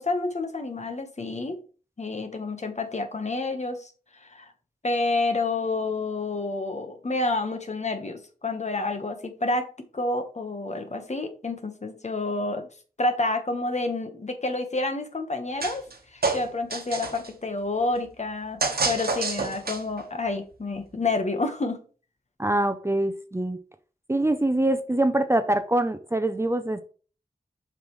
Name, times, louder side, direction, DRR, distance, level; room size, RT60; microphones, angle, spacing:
voice 1, 0.0-1.6 2.0-3.9 4.2-4.5 4.8-9.7 9.9-12.7 13.0-15.8 16.1-21.8, left 2 dB, 50° left, 6 dB, 1.3 m, -29 dB
sound 1, 15.6-16.0 16.2-17.3 18.6-20.0, right 4 dB, 90° right, 1.3 m, -28 dB
voice 2, 22.4-23.6 24.1-26.8, right 1 dB, 15° right, 9 dB, 0.6 m, -24 dB
7.2 x 5.6 x 3.2 m, 0.39 s
wide cardioid pair, 80°, 15 cm